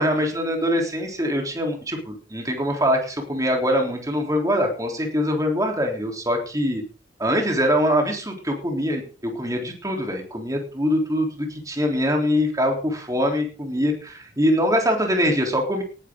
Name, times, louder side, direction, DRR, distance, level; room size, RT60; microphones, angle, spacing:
voice 1, 0.0-6.8 7.2-15.8, equal, 20° right, 2 dB, 3.6 m, -23 dB
18.5 x 11.0 x 3.9 m, 0.36 s
head